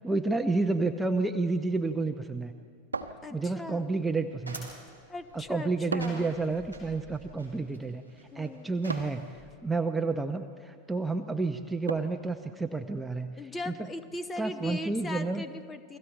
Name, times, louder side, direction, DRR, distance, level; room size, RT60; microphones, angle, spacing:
voice 1, 0.0-2.5 3.3-4.7 5.3-13.3 13.7-13.8 14.4-15.4, right 3 dB, 5° right, 6 dB, 0.8 m, -30 dB
sound 1, 2.9-3.8 5.9-6.4 8.9-9.3 11.9-12.3, right 4 dB, 75° right, 1.0 m, -37 dB
voice 2, 3.2-3.9 5.1-6.3 8.3-8.8 13.4-16.0, left 2 dB, 15° left, 11 dB, 1.1 m, -39 dB
sound 2, 3.8-9.4, right 2 dB, 90° left, 5.7 m, -48 dB
29.5 x 22.5 x 4.5 m, 2.1 s
figure-of-eight pair, 90°, 0 cm